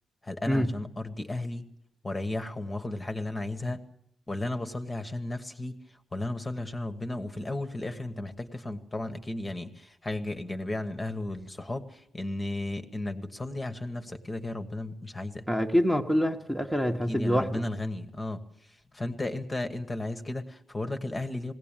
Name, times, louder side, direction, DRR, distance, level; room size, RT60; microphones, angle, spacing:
voice 1, 0.2-1.7 2.0-3.8 4.3-5.7 6.1-15.4 17.1-18.4 18.9-21.5, left 2 dB, 15° left, 7 dB, 1.2 m, -34 dB
voice 2, 15.5-17.6, equal, 5° right, 2 dB, 1.1 m, -26 dB
20.5 x 17.5 x 8.9 m, 0.71 s
wide cardioid pair, 160°, 0 cm